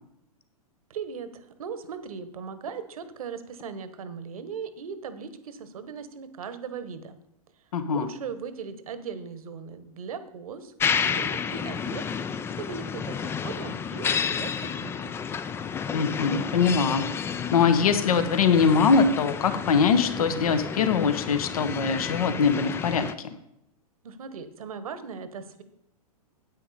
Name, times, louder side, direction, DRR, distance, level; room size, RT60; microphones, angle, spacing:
voice 1, 0.9-7.2 7.9-10.7 11.0-15.1 24.0-25.6, right 6 dB, 65° right, 12 dB, 1.2 m, -38 dB
voice 2, 7.7-8.1 15.9-17.0 17.5-23.3, left 5 dB, 70° left, 9 dB, 1.2 m, -22 dB
sound 1, 10.8-23.1, left 7 dB, 10° left, 0.4 m, -31 dB
9.6 x 9.0 x 4.2 m, 0.81 s
hypercardioid pair, 110°, 19 cm